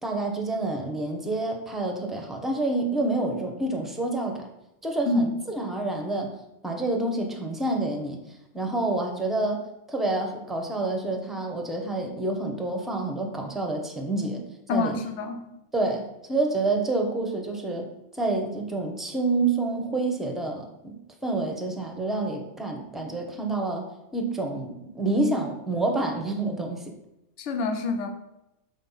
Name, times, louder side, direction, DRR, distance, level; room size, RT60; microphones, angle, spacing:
voice 1, 0.0-4.5 4.8-6.3 6.6-15.0 15.7-21.0 21.2-23.9 24.1-27.0, right 2 dB, ahead, 3 dB, 0.7 m, -28 dB
voice 2, 14.7-15.4 27.4-28.1, left 3 dB, 60° left, 7 dB, 1.1 m, -26 dB
6.2 x 4.4 x 5.6 m, 0.88 s
omnidirectional pair, 1.4 m